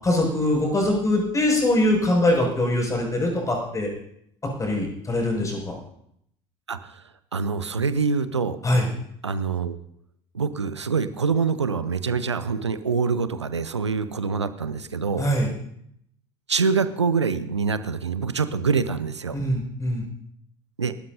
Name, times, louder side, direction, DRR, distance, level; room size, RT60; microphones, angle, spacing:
voice 1, 0.0-3.9 4.6-5.7 8.6-8.9 15.2-15.5 19.3-20.0, left 1 dB, 20° left, 0 dB, 6.3 m, -22 dB
voice 2, 6.7-7.0 7.3-8.6 9.2-9.8 10.3-15.3 16.5-19.4 20.8-20.9, right 5 dB, 85° right, 13 dB, 0.7 m, -25 dB
27.0 x 13.0 x 2.8 m, 0.71 s
figure-of-eight pair, 60°, 14 cm